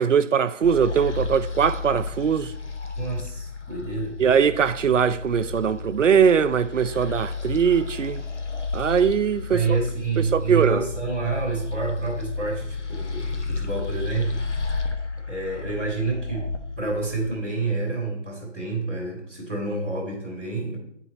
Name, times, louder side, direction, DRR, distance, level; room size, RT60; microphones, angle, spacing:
voice 1, 0.0-2.5 4.2-8.3 8.7-9.6 10.2-10.9, right 7 dB, 85° right, 0.5 m, -21 dB
sound 1, 0.6-17.3, left 4 dB, 70° left, 1.1 m, -32 dB
voice 2, 2.9-4.2 9.5-14.6 15.3-16.5 16.8-20.8, right 3 dB, 10° left, 1.3 m, -28 dB
9.1 x 4.4 x 4.0 m
figure-of-eight pair, 170°, 36 cm